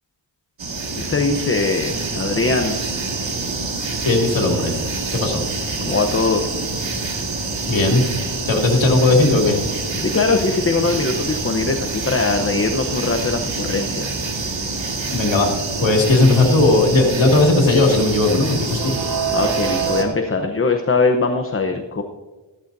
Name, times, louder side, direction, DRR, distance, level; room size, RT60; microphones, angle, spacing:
sound 1, 0.6-20.0, right 4 dB, 75° right, 1.9 m, -26 dB
voice 1, 0.9-2.8 5.8-6.5 10.0-14.2 19.3-22.0, left 3 dB, 30° left, 5 dB, 0.8 m, -21 dB
voice 2, 4.0-4.8 5.1-5.4 7.7-8.0 8.5-9.6 15.1-15.5 15.8-18.9, left 2 dB, 80° left, 0 dB, 2.5 m, -16 dB
14.0 x 14.0 x 2.7 m, 1.2 s
wide cardioid pair, 125°, 45 cm